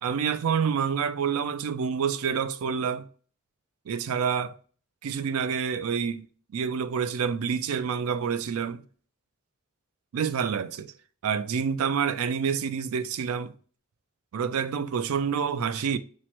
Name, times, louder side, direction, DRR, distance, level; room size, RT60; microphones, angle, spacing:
voice 1, 0.0-3.1 3.9-4.6 5.0-6.3 6.5-8.8 10.1-10.9 11.2-13.5 14.3-16.0, right 7 dB, 75° right, 0.4 m, -28 dB
4.5 x 2.1 x 4.3 m
head